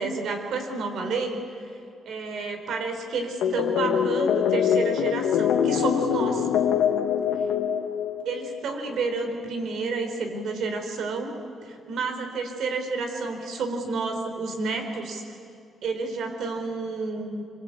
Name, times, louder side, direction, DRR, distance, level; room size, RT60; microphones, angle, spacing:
voice 1, 0.0-1.4 2.1-6.5 8.2-11.3 11.6-15.4 15.8-17.4, right 3 dB, 70° right, 5 dB, 4.2 m, -30 dB
sound 1, 3.4-8.6, left 8 dB, 85° left, 1.5 m, -24 dB
25.5 x 23.5 x 8.5 m, 2.5 s
cardioid pair, 90°, 0 cm